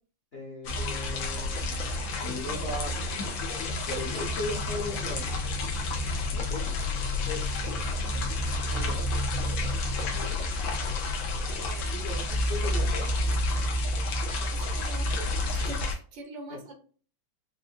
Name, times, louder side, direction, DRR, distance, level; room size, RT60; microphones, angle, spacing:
voice 1, 0.3-1.9 2.2-2.9 3.9-5.4 6.3-6.7 7.0-7.5 8.7-9.1 11.9-13.1 16.5-16.6, left 1 dB, 40° left, -2 dB, 1.0 m, -38 dB
sound 1, 0.6-15.9, left 2 dB, 85° left, 1.7 m, -29 dB
voice 2, 10.1-10.5 11.5-12.0 14.5-16.7, right 3 dB, 75° right, 4 dB, 1.7 m, -44 dB
5.2 x 2.5 x 2.4 m, 0.40 s
omnidirectional pair, 2.1 m